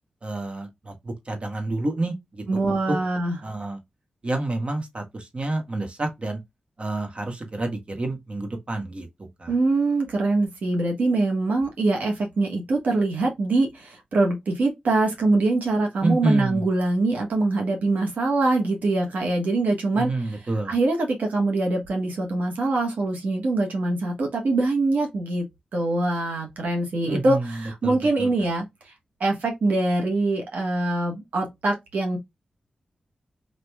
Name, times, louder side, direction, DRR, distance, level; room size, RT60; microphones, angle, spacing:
voice 1, 0.2-3.0 3.4-3.8 4.2-6.4 6.8-9.1 9.4-9.5 16.0-16.6 19.9-20.7 27.0-28.3, right 2 dB, 45° right, 1.4 m, -29 dB
voice 2, 2.5-3.4 9.5-20.4 20.7-25.4 25.7-28.9 29.2-32.2, right 2 dB, 80° right, 1.3 m, -23 dB
4.8 x 3.2 x 2.2 m
cardioid pair, 50°, 3 cm